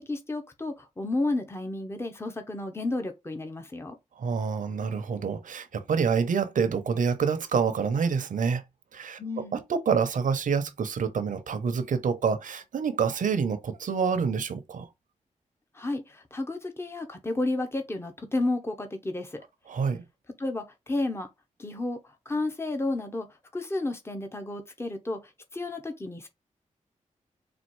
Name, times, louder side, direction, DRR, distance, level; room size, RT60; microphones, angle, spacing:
voice 1, 0.0-4.0 9.2-9.6 15.7-19.4 20.4-21.3 21.6-23.3 23.5-26.3, left 2 dB, 20° left, 0.9 m, -32 dB
voice 2, 4.1-8.6 8.9-9.2 9.5-14.9 19.7-20.0, right 6 dB, 80° right, 0.8 m, -27 dB
4.3 x 2.4 x 4.6 m
cardioid pair, 75°, 13 cm